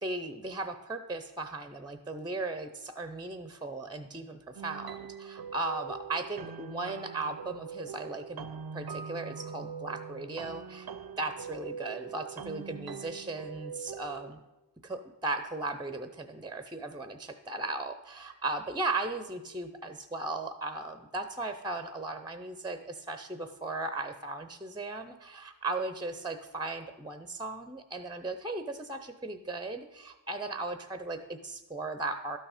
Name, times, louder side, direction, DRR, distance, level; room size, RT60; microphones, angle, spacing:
voice 1, 0.0-8.5 8.7-10.9 11.2-14.4 14.8-32.4, right 2 dB, 10° right, 9 dB, 0.6 m, -37 dB
sound 1, 4.6-14.3, right 6 dB, 60° right, 0.6 m, -42 dB
12.0 x 6.3 x 4.9 m, 1.0 s
wide cardioid pair, 50°, 43 cm